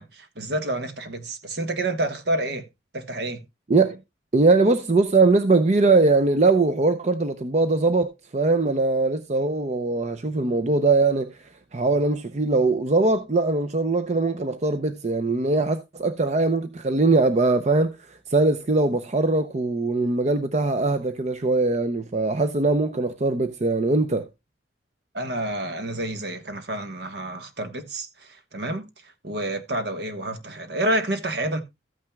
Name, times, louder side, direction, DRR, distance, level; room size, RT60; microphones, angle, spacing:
voice 1, 0.0-2.7 2.9-3.4 25.1-31.6, right 1 dB, 65° right, 1.3 m, -29 dB
voice 2, 4.3-11.4 11.7-24.3, right 3 dB, 40° right, 0.5 m, -21 dB
14.0 x 8.8 x 2.2 m
head